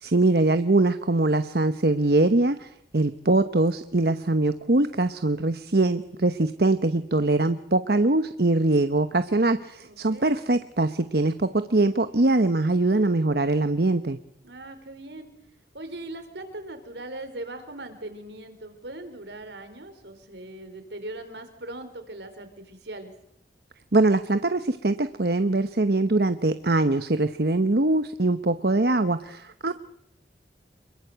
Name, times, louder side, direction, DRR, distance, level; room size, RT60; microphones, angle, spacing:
voice 1, 0.0-14.2 23.9-29.7, right 2 dB, 60° right, 10 dB, 1.0 m, -22 dB
voice 2, 9.8-10.3 14.4-15.3 15.7-23.1 27.8-27.9, right 1 dB, 80° right, 8 dB, 4.7 m, -40 dB
27.5 x 22.5 x 8.1 m, 0.75 s
head